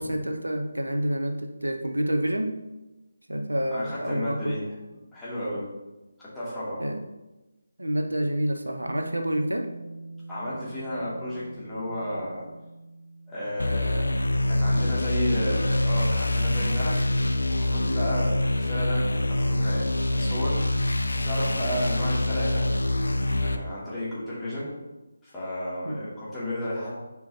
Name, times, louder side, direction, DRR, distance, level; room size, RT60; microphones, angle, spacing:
voice 1, 0.0-2.6 3.3-4.6 6.8-7.0 7.8-9.7 25.9-26.0, right 1 dB, 80° right, 5 dB, 0.8 m, -28 dB
voice 2, 3.7-5.6 6.2-6.8 10.3-12.5 13.3-14.2 14.5-17.0 17.6-20.6 21.1-24.7 25.2-26.9, equal, 5° left, -12 dB, 2.6 m, -33 dB
Bass guitar, 8.8-15.1, right 2 dB, 40° right, 1.6 m, -44 dB
sound 1, 13.6-23.6, left 1 dB, 75° left, 0.7 m, -25 dB
10.5 x 4.7 x 3.0 m, 1.1 s
figure-of-eight pair, 155°, 0 cm